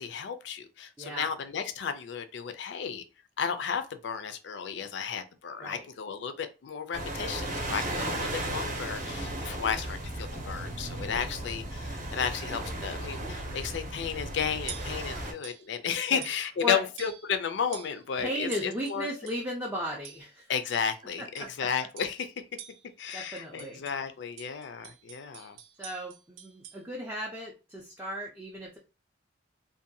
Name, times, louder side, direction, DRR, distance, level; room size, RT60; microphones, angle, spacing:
voice 1, 0.0-3.0 3.4-19.1 20.5-22.4 23.0-25.6, left 7 dB, 65° left, 0.4 m, -33 dB
voice 2, 1.0-1.3 5.6-5.8 8.3-8.5 15.1-15.3 16.1-16.2 16.6-16.8 18.2-20.5 21.2-21.5 23.1-23.8 25.8-28.8, equal, 10° right, 0.4 m, -36 dB
sound 1, 6.9-15.3, right 1 dB, 40° right, 0.7 m, -35 dB
sound 2, 14.1-14.3 14.7-15.0 15.4-15.7 16.2-16.7 17.0-17.4 17.7-18.0 18.5-19.5 20.0-20.4 20.7-21.0 21.4-21.6 22.0-22.2 22.6-24.0 24.4-26.8, right 10 dB, 85° right, 0.4 m, -47 dB
2.6 x 2.2 x 2.6 m
head